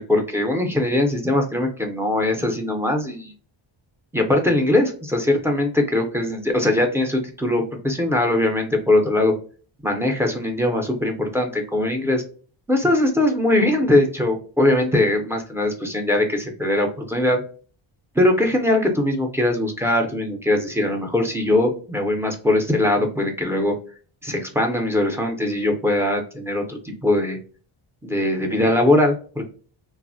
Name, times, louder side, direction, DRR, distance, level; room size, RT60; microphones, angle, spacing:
voice 1, 0.0-3.3 4.1-9.3 9.8-12.2 12.7-17.4 18.2-23.7 24.2-27.4 28.0-29.4, left 1 dB, 5° right, 2 dB, 0.4 m, -21 dB
3.1 x 2.0 x 2.5 m, 0.40 s
wide cardioid pair, 160°, 49 cm